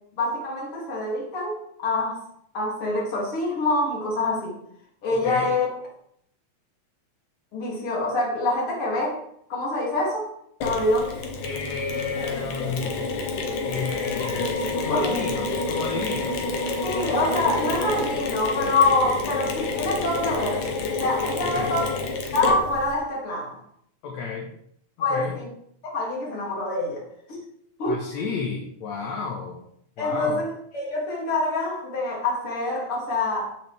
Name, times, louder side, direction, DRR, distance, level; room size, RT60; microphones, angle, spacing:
voice 1, 0.2-2.2 2.5-4.5 5.0-5.7 7.5-9.2 9.5-10.3 10.6-11.1 14.9-15.2 16.8-20.7 20.9-21.9 22.3-23.6 25.0-25.5 25.8-27.4 27.8-28.0 30.0-33.6, left 2 dB, 45° left, -2 dB, 3.3 m, -25 dB
voice 2, 5.1-5.5 11.4-13.0 13.7-16.5 21.4-21.8 24.0-24.5 25.1-25.4 27.9-29.6 30.0-30.4, left 5 dB, 65° left, -1 dB, 2.4 m, -32 dB
Mechanisms, 10.6-22.9, left 3 dB, 80° left, 2.7 m, -28 dB
14.5 x 6.2 x 3.4 m, 0.70 s
omnidirectional pair, 3.4 m